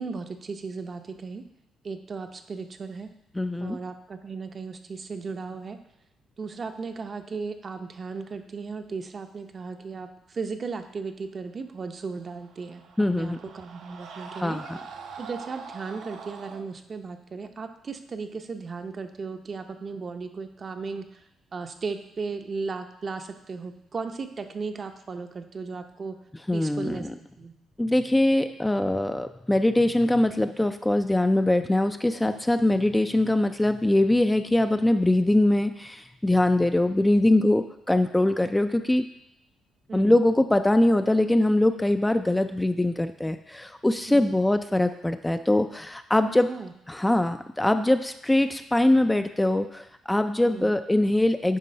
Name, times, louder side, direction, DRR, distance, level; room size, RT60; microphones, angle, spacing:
voice 1, 0.0-1.4 1.8-3.1 3.6-5.8 6.4-12.8 13.1-14.6 15.2-21.2 21.5-26.2 26.5-27.5 39.9-40.2 44.1-44.4 46.5-46.7 50.4-50.8, right 4 dB, 40° right, 7 dB, 0.6 m, -36 dB
voice 2, 3.4-3.8 13.0-13.4 14.4-14.8 26.5-27.1 27.8-39.1 39.9-46.5 46.9-51.6, left 1 dB, 10° left, 8 dB, 0.3 m, -22 dB
Screaming, 12.2-16.6, right 5 dB, 80° right, 0.7 m, -43 dB
9.2 x 3.1 x 5.5 m, 0.85 s
cardioid pair, 90°, 0 cm